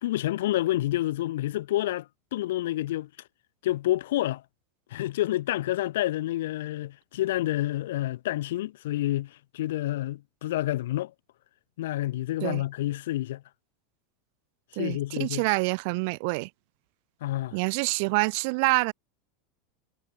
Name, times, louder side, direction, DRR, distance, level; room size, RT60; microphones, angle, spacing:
voice 1, 0.0-3.1 3.6-4.4 4.9-11.1 11.8-13.4 14.8-15.4 17.2-17.6, left 15 dB, 85° left, 2.7 m, -28 dB
voice 2, 14.8-16.5 17.5-18.9, right 31 dB, 50° right, 1.6 m, -26 dB
supercardioid pair, 170°, 0 cm